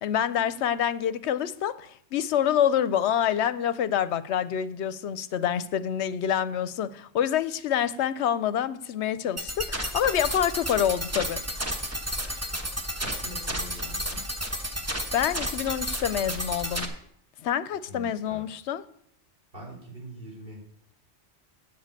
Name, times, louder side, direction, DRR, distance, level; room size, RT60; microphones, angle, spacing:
voice 1, 0.0-11.4 15.1-16.9 17.4-18.8, left 9 dB, 75° left, 15 dB, 0.9 m, -27 dB
sound 1, 9.4-16.9, equal, 15° right, 1.0 m, -32 dB
voice 2, 13.0-14.2 17.9-18.4 19.5-20.6, equal, 50° right, -3 dB, 4.2 m, -43 dB
7.7 x 7.4 x 8.4 m, 0.68 s
omnidirectional pair, 1.2 m